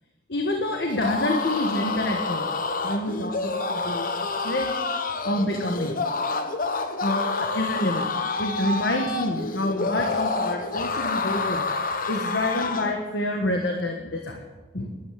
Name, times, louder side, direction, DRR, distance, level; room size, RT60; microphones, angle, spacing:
voice 1, 0.3-2.5 2.8-4.1 4.4-4.7 5.2-6.0 7.0-8.1 8.4-11.7 12.1-14.4 14.7-14.9, left 1 dB, 65° left, 2 dB, 1.5 m, -27 dB
sound 1, 0.9-13.0, left 3 dB, 50° left, 1.0 m, -28 dB
12.5 x 11.0 x 7.8 m, 1.3 s
head